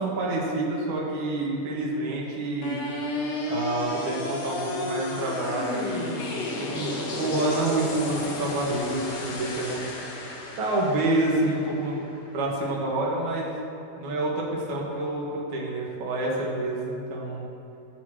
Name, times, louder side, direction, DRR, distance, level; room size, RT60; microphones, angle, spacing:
voice 1, 0.0-2.8 3.5-9.8 10.6-12.0 12.3-13.6 14.0-17.4, right 2 dB, 65° right, -4 dB, 3.0 m, -28 dB
sound 1, 2.6-12.7, left 2 dB, 60° left, 2.2 m, -33 dB
17.5 x 6.9 x 3.1 m, 2.9 s
omnidirectional pair, 3.8 m